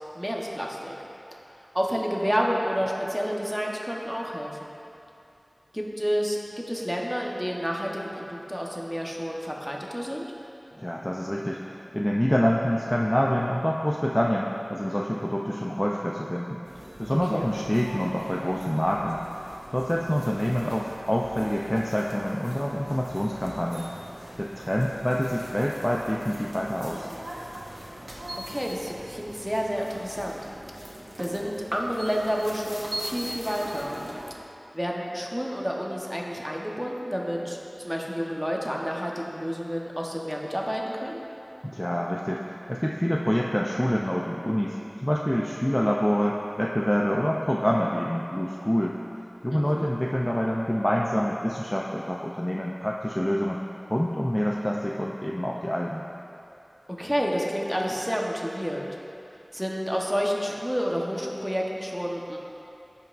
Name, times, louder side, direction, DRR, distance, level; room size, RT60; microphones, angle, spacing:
voice 1, 0.1-1.0 1.7-4.7 5.7-6.4 6.7-10.3 17.1-17.5 28.5-30.5 31.2-34.0 34.7-41.2 49.5-49.9 57.0-58.9 59.5-62.4, equal, 5° right, -2 dB, 1.1 m, -29 dB
voice 2, 10.8-16.6 17.0-23.9 24.4-27.1 41.6-44.8 45.0-49.0 49.4-53.6 53.9-56.1, equal, 15° left, -2 dB, 0.5 m, -26 dB
sound 1, 16.6-34.3, right 1 dB, 85° right, 1.1 m, -41 dB
15.0 x 5.4 x 2.6 m, 2.7 s
wide cardioid pair, 45°, 0 cm